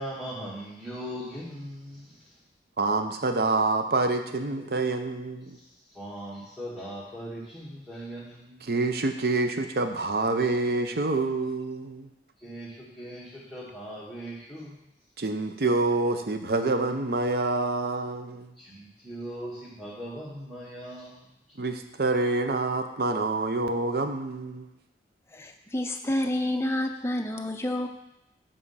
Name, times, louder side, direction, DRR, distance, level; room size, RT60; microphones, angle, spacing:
voice 1, 0.0-2.4 4.6-4.8 5.5-8.7 12.4-14.8 18.6-21.3, equal, 5° right, -10 dB, 1.3 m, -40 dB
voice 2, 2.8-5.6 8.6-12.1 15.2-18.5 21.6-24.7, right 3 dB, 60° right, 7 dB, 0.6 m, -27 dB
voice 3, 25.3-27.9, left 1 dB, 15° left, 4 dB, 0.4 m, -29 dB
7.3 x 3.7 x 5.5 m, 0.85 s
head